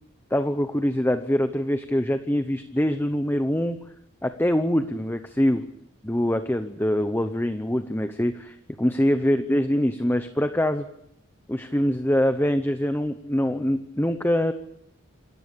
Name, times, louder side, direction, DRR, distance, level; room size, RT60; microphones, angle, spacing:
voice 1, 0.3-3.8 4.2-5.6 6.0-10.9 11.5-14.5, equal, 10° left, 9 dB, 0.9 m, -24 dB
27.0 x 14.0 x 8.5 m, 0.77 s
head